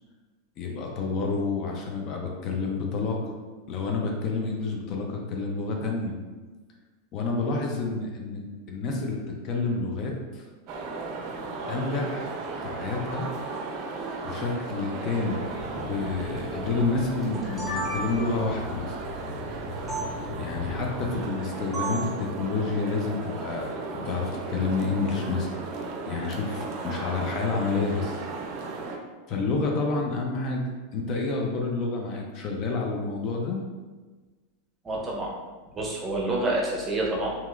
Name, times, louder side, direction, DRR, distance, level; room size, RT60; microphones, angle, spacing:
voice 1, 0.6-3.3 3.7-6.1 7.1-10.4 11.7-12.3 12.6-13.3 14.2-15.4 15.7-19.0 20.3-25.6 26.1-28.2 29.3-33.6, left 3 dB, 45° left, 1 dB, 0.5 m, -29 dB
sound 1, 10.7-29.0, right 3 dB, 50° right, 0.5 m, -36 dB
sound 2, 15.3-21.2, left 2 dB, 25° left, 1.2 m, -40 dB
sound 3, 17.2-18.5 19.9-20.0 21.7-22.1, right 3 dB, 5° left, 1.4 m, -32 dB
voice 2, 34.8-35.3 35.7-37.4, right 2 dB, 20° right, -3 dB, 0.7 m, -28 dB
2.9 x 2.8 x 2.4 m, 1.3 s
hypercardioid pair, 115°, 0 cm